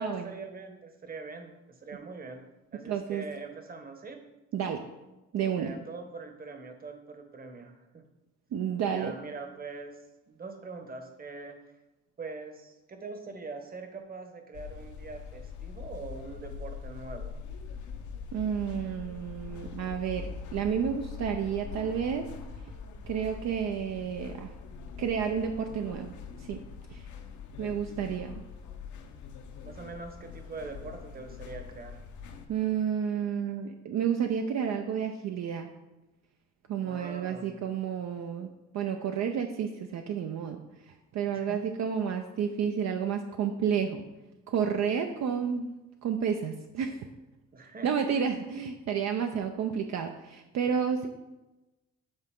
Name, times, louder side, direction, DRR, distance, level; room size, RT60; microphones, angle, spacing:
voice 1, 0.0-2.4 2.7-4.2 5.5-8.0 8.8-10.0 10.3-11.8 12.2-17.4 29.6-32.0 36.8-37.6 41.3-41.6 47.5-47.9, right 3 dB, 30° right, 5 dB, 1.0 m, -43 dB
voice 2, 2.9-3.2 4.5-4.8 5.3-5.8 8.5-9.1 18.3-22.3 23.0-24.5 25.0-26.1 26.4-26.6 26.9-27.0 27.6-28.4 32.5-35.7 36.7-40.6 40.9-44.0 44.5-45.7 46.0-47.1 47.8-51.1, right 7 dB, 65° right, 5 dB, 0.5 m, -31 dB
sound 1, 14.5-32.5, left 6 dB, 75° left, 0.8 m, -43 dB
7.9 x 3.9 x 3.6 m, 1.0 s
cardioid pair, 90°, 30 cm